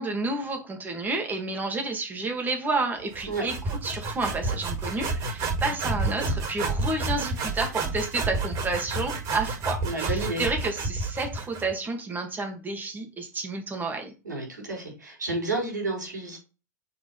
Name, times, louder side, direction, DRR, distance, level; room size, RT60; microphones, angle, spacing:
voice 1, 0.0-3.6 3.8-14.1, right 3 dB, 20° right, 4 dB, 2.7 m, -30 dB
sound 1, 3.1-11.7, right 3 dB, 45° right, 5.3 m, -30 dB
voice 2, 9.8-10.6 14.2-16.4, right 2 dB, 85° right, 1 dB, 4.7 m, -31 dB
7.1 x 4.8 x 5.8 m, 0.31 s
figure-of-eight pair, 95°, 10 cm